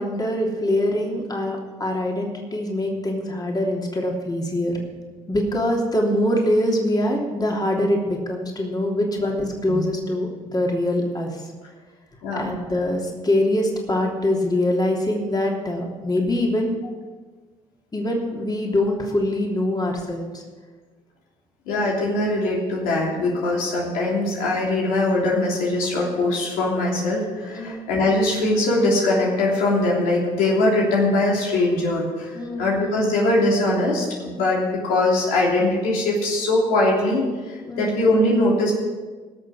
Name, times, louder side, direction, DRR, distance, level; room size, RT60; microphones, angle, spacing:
voice 1, 0.0-4.8 5.3-11.5 12.3-16.8 17.9-20.4 27.5-27.8 32.3-32.7 37.6-37.9, left 1 dB, 25° left, -1 dB, 3.2 m, -24 dB
voice 2, 12.2-12.5 21.7-38.7, left 2 dB, 80° left, -3 dB, 3.2 m, -21 dB
19.0 x 6.6 x 6.5 m, 1.4 s
supercardioid pair, 65°, 15 cm